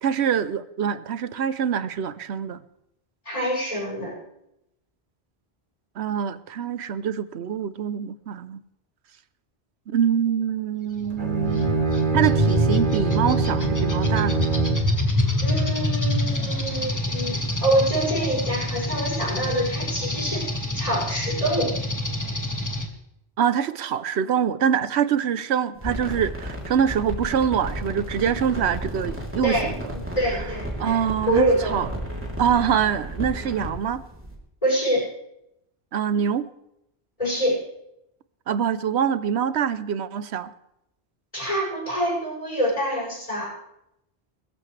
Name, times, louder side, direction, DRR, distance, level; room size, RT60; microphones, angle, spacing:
voice 1, 0.0-2.6 6.0-8.6 9.9-11.9 12.1-14.5 23.4-29.9 30.8-31.9 32.4-34.0 35.9-36.5 38.5-40.5, right 8 dB, 85° right, 15 dB, 1.0 m, -25 dB
voice 2, 3.2-4.1 15.4-20.4 20.7-21.7 29.4-29.7 29.9-30.9 31.3-31.9 34.6-35.0 37.2-37.6 41.3-43.5, right 1 dB, 35° left, -10 dB, 7.8 m, -25 dB
sound 1, 11.0-22.9, left 1 dB, 15° left, 1.6 m, -26 dB
Bowed string instrument, 11.1-15.0, right 5 dB, 50° right, 2.1 m, -24 dB
sound 2, 25.8-34.4, equal, 10° right, 3.2 m, -33 dB
21.0 x 14.0 x 3.3 m, 0.82 s
omnidirectional pair, 1.1 m